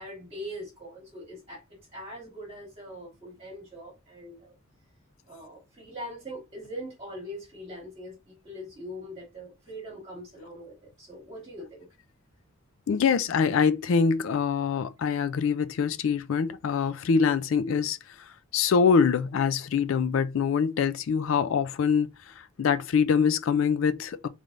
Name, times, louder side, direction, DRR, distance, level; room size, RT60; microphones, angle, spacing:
voice 1, 0.0-1.6 1.9-4.5 5.3-11.8, equal, 30° right, 1.5 m, -42 dB
voice 2, 12.9-18.0 18.5-22.1 22.6-24.3, left 6 dB, 70° left, 0.4 m, -24 dB
3.3 x 3.2 x 2.5 m
head